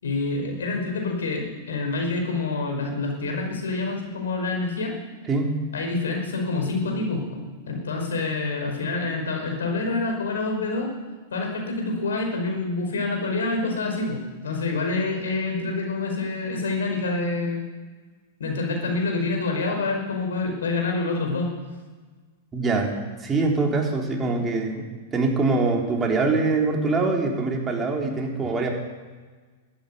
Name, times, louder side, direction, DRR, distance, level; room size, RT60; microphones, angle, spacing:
voice 1, 0.0-4.9 5.7-10.9 11.3-17.7 18.4-21.5, left 3 dB, 80° left, 2 dB, 5.1 m, -27 dB
voice 2, 22.5-22.9 23.2-28.7, right 3 dB, 20° right, 0 dB, 3.8 m, -23 dB
13.5 x 10.5 x 9.4 m, 1.4 s
hypercardioid pair, 110°, 0 cm